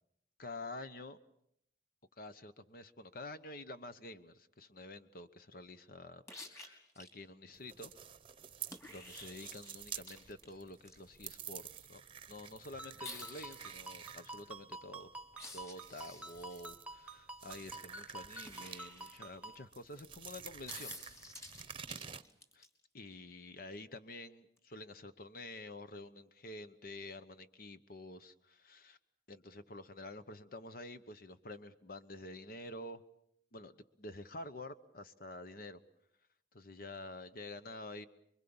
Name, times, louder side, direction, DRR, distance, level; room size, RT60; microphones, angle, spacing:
voice 1, 0.4-1.2 2.2-6.2 6.5-7.9 8.9-12.0 12.3-15.1 15.5-21.0 22.5-22.6 22.9-29.0 29.3-33.0 33.5-33.7 34.0-35.8 36.5-38.1, left 2 dB, 55° left, 11 dB, 1.0 m, -49 dB
sound 1, 6.3-7.1 8.7-10.9 13.0-13.7 15.3-16.6 18.5-19.6 20.7-22.7 24.6-24.7, left 1 dB, 15° left, 3.6 m, -51 dB
sound 2, 7.5-22.2, right 8 dB, 30° right, 0.9 m, -50 dB
Ringtone, 12.8-19.6, right 2 dB, 10° right, 1.1 m, -50 dB
26.0 x 23.5 x 7.1 m, 0.74 s
head